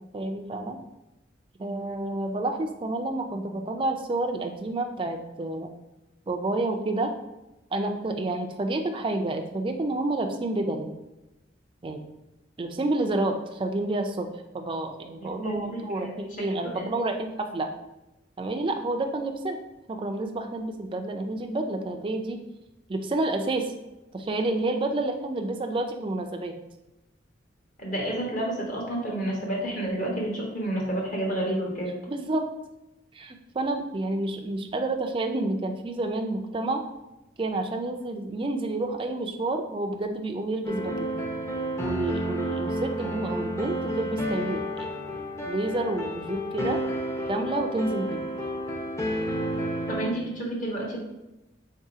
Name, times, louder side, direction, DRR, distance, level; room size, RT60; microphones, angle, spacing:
voice 1, 0.1-0.8 1.6-5.7 6.3-7.1 7.7-10.9 11.8-12.0 12.6-14.3 14.5-17.7 18.4-19.6 19.9-22.4 22.9-23.7 24.1-26.6 32.1-32.4 33.1-36.8 37.4-41.1 41.8-46.8 47.3-48.2, right 2 dB, 25° right, 4 dB, 0.4 m, -29 dB
voice 2, 15.2-16.8 27.8-31.9 49.9-51.0, right 1 dB, 45° left, -2 dB, 1.0 m, -30 dB
sound 1, 40.6-50.1, equal, 15° left, 0.6 m, -31 dB
3.7 x 2.8 x 4.8 m, 0.97 s
head